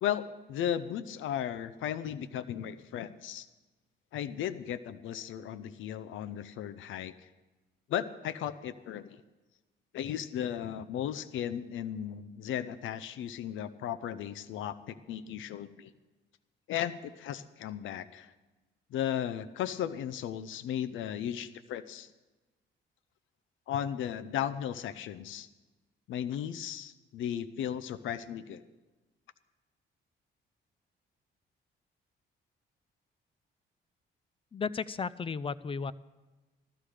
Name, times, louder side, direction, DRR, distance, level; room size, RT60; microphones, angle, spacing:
voice 1, 0.0-3.5 4.1-7.1 7.9-9.2 9.9-15.9 16.7-18.3 18.9-22.1 23.7-25.5 26.1-28.6, left 10 dB, 80° left, 14 dB, 0.7 m, -35 dB
voice 2, 34.5-35.9, left 5 dB, 25° left, 18 dB, 0.5 m, -34 dB
15.0 x 13.0 x 5.0 m, 1.2 s
cardioid pair, 90°, 20 cm